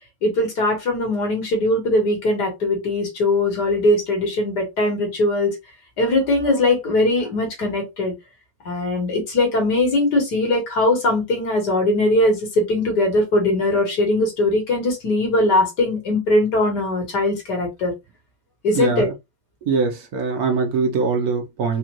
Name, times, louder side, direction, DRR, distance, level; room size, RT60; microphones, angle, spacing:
voice 1, 0.2-5.6 6.0-8.1 8.7-17.9 18.6-19.1, left 2 dB, 75° left, 2.3 m, -20 dB
voice 2, 19.6-21.8, right 4 dB, 65° right, 1.4 m, -22 dB
4.9 x 2.5 x 3.0 m
omnidirectional pair, 1.8 m